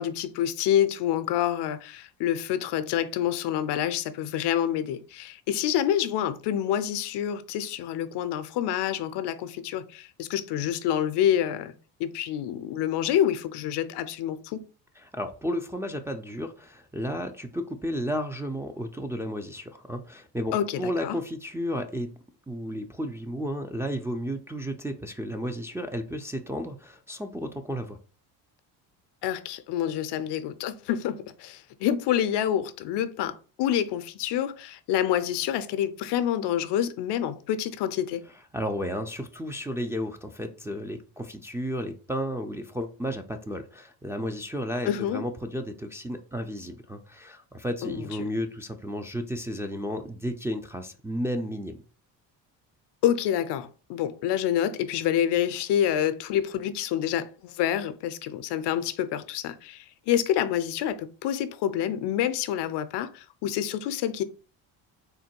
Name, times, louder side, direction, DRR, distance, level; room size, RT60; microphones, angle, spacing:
voice 1, 0.0-11.7 12.0-14.7 20.5-21.2 29.2-38.2 44.9-45.2 47.8-48.1 53.0-64.2, left 10 dB, 60° left, 0.6 m, -27 dB
voice 2, 15.0-22.1 22.5-28.0 38.5-51.8, equal, 5° right, 0.4 m, -33 dB
3.7 x 2.2 x 4.4 m
supercardioid pair, 70°, 46 cm